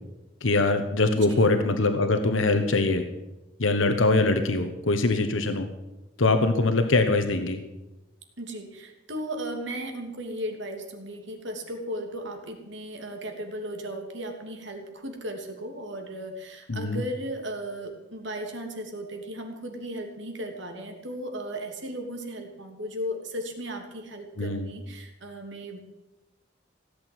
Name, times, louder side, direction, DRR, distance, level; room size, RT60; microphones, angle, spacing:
voice 1, 0.4-3.0 3.6-5.7 6.2-7.6 16.7-17.0 24.4-24.7, left 2 dB, 85° left, 8 dB, 1.2 m, -23 dB
voice 2, 8.4-25.8, equal, 70° right, 3 dB, 2.9 m, -36 dB
17.0 x 8.3 x 9.3 m, 1.0 s
head